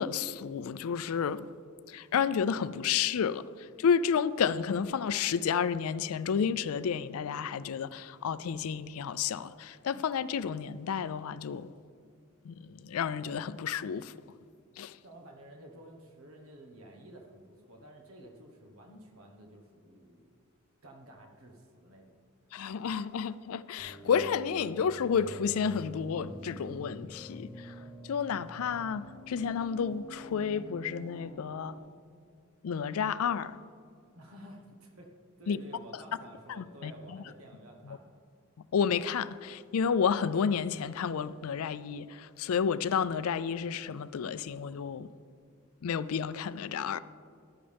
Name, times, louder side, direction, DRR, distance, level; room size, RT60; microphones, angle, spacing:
voice 1, 0.0-1.5 1.9-11.7 12.4-14.1 14.8-15.0 22.5-31.8 32.6-33.6 35.5-35.6 36.5-37.2 37.9-38.0 38.7-45.1 45.8-47.0, left 7 dB, 80° left, 0.4 m, -31 dB
voice 2, 15.0-20.3 20.8-22.2 34.1-35.1 35.4-38.2, right 1 dB, 75° right, 1.3 m, -51 dB
sound 1, 23.8-31.8, left 1 dB, 15° left, 1.5 m, -47 dB
14.0 x 11.5 x 3.5 m
head